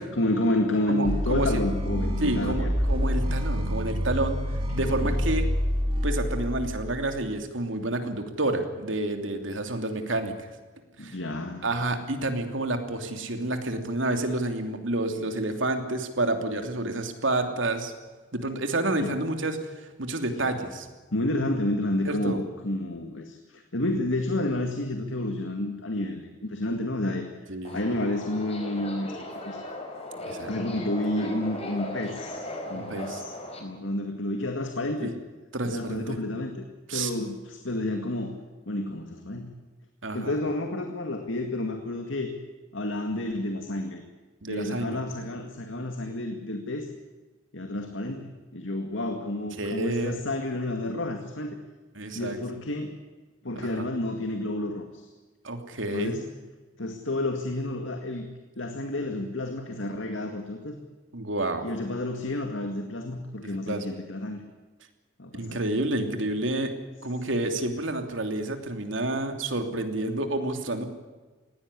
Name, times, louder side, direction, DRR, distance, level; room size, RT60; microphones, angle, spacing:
voice 1, 0.0-2.7 4.8-5.2 11.0-11.7 19.0-19.1 21.1-27.3 27.7-29.6 30.5-33.3 33.6-35.1 35.7-36.6 36.9-38.4 38.7-39.5 40.1-42.3 42.7-44.0 44.5-46.9 47.5-51.6 52.1-52.9 53.4-55.1 55.9-56.2 56.8-58.3 58.6-60.8 61.6-64.4 65.2-65.6, left 1 dB, 80° left, 5 dB, 2.1 m, -30 dB
voice 2, 0.9-1.6 2.2-5.4 6.0-10.5 11.0-11.2 11.6-17.9 18.3-20.9 22.0-22.4 27.5-27.8 30.3-30.5 32.7-33.2 35.0-35.1 35.5-36.2 36.9-37.1 40.0-40.4 44.4-45.0 49.6-50.2 52.0-52.4 53.7-53.8 55.4-56.2 61.1-61.7 63.4-63.8 65.3-66.7 67.0-70.9, right 2 dB, 80° right, 6 dB, 3.0 m, -29 dB
sound 1, 1.0-7.3, equal, 30° right, 2.9 m, -27 dB
Subway metro underground, 27.6-33.6, left 1 dB, 35° left, 4.5 m, -38 dB
19.5 x 17.0 x 10.0 m, 1.3 s
head